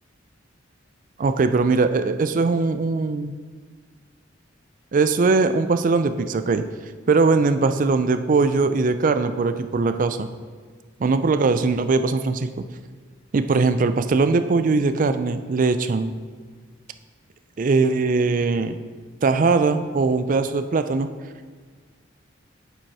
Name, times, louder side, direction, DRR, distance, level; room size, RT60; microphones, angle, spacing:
voice 1, 1.2-3.3 4.9-6.6 7.1-10.3 11.0-12.7 13.3-16.1 17.6-18.8 19.2-21.1, right 3 dB, 45° right, 10 dB, 0.4 m, -20 dB
7.3 x 5.3 x 4.7 m, 1.5 s
head